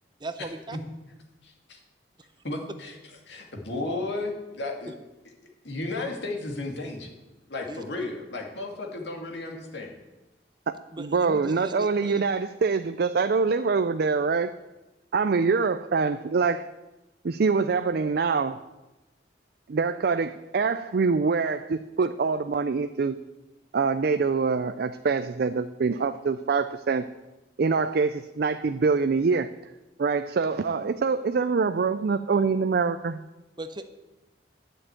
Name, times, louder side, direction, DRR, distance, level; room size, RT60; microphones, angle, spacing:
voice 1, 0.2-0.8 7.7-7.8 10.9-12.1 33.6-33.9, right 2 dB, 25° right, 9 dB, 0.7 m, -38 dB
voice 2, 1.4-1.8 2.4-2.9 3.3-4.9 5.6-7.1 7.5-10.0, left 2 dB, 70° left, 1 dB, 2.3 m, -34 dB
voice 3, 10.7-14.5 15.1-16.7 17.2-18.6 19.7-23.2 23.7-27.1 27.6-29.5 30.0-33.2, right 4 dB, 55° right, 11 dB, 0.4 m, -25 dB
11.0 x 6.6 x 8.9 m, 1.1 s
head